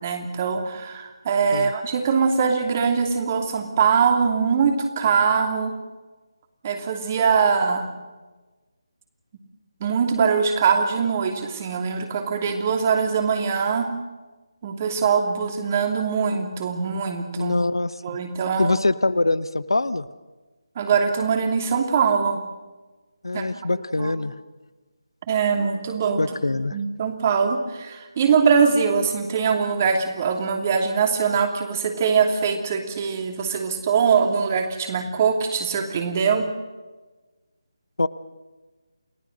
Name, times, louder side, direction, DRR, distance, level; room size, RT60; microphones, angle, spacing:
voice 1, 0.0-5.7 6.6-7.9 9.8-13.9 14.6-17.5 18.0-18.7 20.8-22.4 23.3-23.5 24.0-24.1 25.3-26.2 26.7-36.5, right 6 dB, 30° right, 4 dB, 2.9 m, -22 dB
voice 2, 17.4-17.9 18.6-20.1 23.2-24.3 26.2-26.8 38.0-38.1, left 2 dB, 65° left, 16 dB, 0.9 m, -23 dB
29.0 x 19.0 x 6.6 m, 1.2 s
figure-of-eight pair, 155°, 3 cm